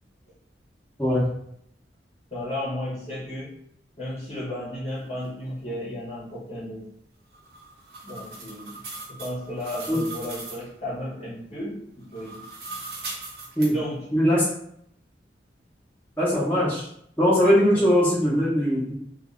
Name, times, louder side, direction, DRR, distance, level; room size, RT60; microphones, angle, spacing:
voice 1, 2.3-3.6 4.0-6.9 8.0-8.8 9.1-12.5 13.7-14.1 17.7-17.8, left 1 dB, 35° left, -8 dB, 1.2 m, -34 dB
sound 1, 7.3-10.7 12.0-13.7, right 3 dB, 60° right, 0.9 m, -39 dB
voice 2, 14.1-14.4 16.2-16.8 17.2-19.0, equal, 10° left, -10 dB, 1.2 m, -20 dB
2.7 x 2.7 x 3.7 m, 0.69 s
head